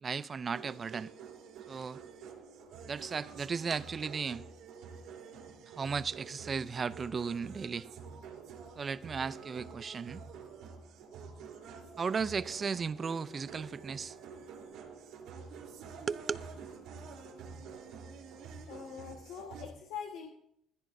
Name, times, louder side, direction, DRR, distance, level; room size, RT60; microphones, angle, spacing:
voice 1, 0.0-1.1 1.7-2.0 2.9-4.4 5.7-7.9 8.8-10.2 12.0-14.2 16.1-16.4, right 5 dB, 25° right, 0.4 m, -35 dB
sound 1, 0.5-19.7, right 5 dB, 85° right, 3.4 m, -48 dB
voice 2, 18.7-20.3, left 7 dB, 90° left, 1.4 m, -43 dB
21.0 x 15.0 x 2.6 m
cardioid pair, 165°, 0 cm